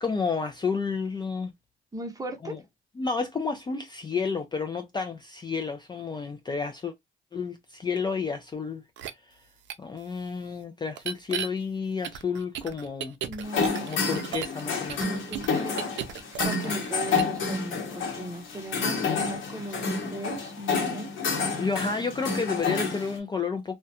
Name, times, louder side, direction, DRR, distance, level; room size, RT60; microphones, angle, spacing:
voice 1, 0.0-1.5 2.4-2.6 3.0-6.9 7.3-8.8 9.2-9.4 9.8-13.2 13.8-15.1 16.4-16.7 21.6-23.8, left 5 dB, 20° left, 0.4 m, -31 dB
voice 2, 1.9-2.6 13.3-13.9 15.0-15.9 16.4-21.1, right 1 dB, 20° right, 0.7 m, -37 dB
sound 1, 9.0-9.1 9.7-9.8 11.0-11.5 12.0-14.6 14.9-16.9 17.2-17.4, right 9 dB, 70° right, 0.4 m, -34 dB
sound 2, 13.4-23.2, left 4 dB, 75° left, 0.9 m, -29 dB
2.3 x 2.1 x 2.6 m
cardioid pair, 90°, 20 cm